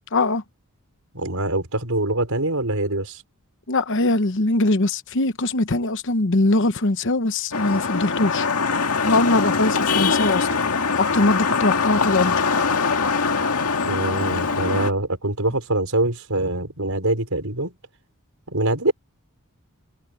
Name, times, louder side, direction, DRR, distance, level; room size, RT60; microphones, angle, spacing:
voice 1, 0.1-0.4 3.7-8.5 9.0-10.5 10.9-12.3, left 2 dB, 55° left, 1.0 m, -21 dB
voice 2, 1.1-3.2 13.8-17.7 18.5-18.9, right 2 dB, 70° right, 5.3 m, -24 dB
Vehicle horn car horn honking / Traffic noise roadway noise, 7.5-14.9, left 5 dB, 90° left, 2.0 m, -22 dB
head